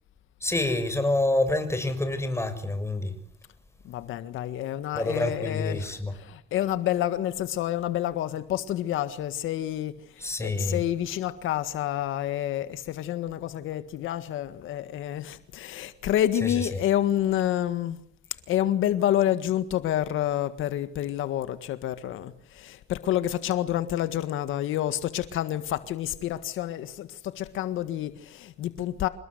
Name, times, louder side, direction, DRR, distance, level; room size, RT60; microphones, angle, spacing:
voice 1, 0.4-3.1 4.9-6.1 10.2-10.8, left 2 dB, 15° left, 6.7 m, -27 dB
voice 2, 3.8-18.0 18.5-29.1, left 12 dB, 85° left, 1.7 m, -28 dB
28.0 x 19.5 x 8.0 m
cardioid pair, 90°, 20 cm